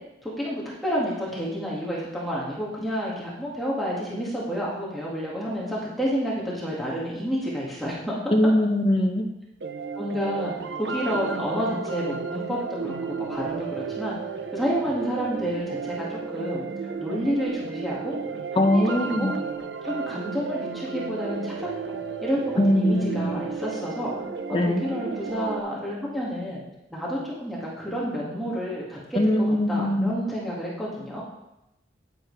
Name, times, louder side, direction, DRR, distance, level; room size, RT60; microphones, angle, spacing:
voice 1, 0.2-8.2 10.0-10.5 10.8-14.2 14.5-18.2 18.5-19.3 19.8-24.1 24.7-26.6 26.9-31.2, equal, ahead, -7 dB, 1.9 m, -30 dB
voice 2, 8.3-9.2 18.5-19.3 22.6-23.4 24.5-24.8 29.1-30.2, left 1 dB, 30° left, 2 dB, 1.0 m, -21 dB
sound 1, 9.6-25.6, right 5 dB, 80° right, 0.7 m, -33 dB
10.0 x 8.9 x 3.3 m, 0.91 s
head